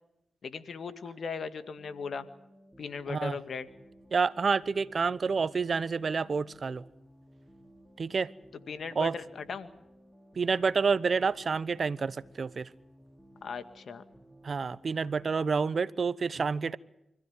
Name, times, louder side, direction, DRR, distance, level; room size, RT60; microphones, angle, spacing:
voice 1, 0.4-2.3 2.8-3.7 8.7-9.7 13.4-14.0, left 5 dB, 70° left, 2.0 m, -38 dB
sound 1, 1.8-15.3, equal, ahead, 5.2 m, -57 dB
voice 2, 4.1-6.8 8.0-8.3 9.0-9.1 10.4-12.7 14.4-16.8, right 5 dB, 55° right, 0.9 m, -28 dB
25.5 x 15.5 x 9.5 m
supercardioid pair, 40°, 0 cm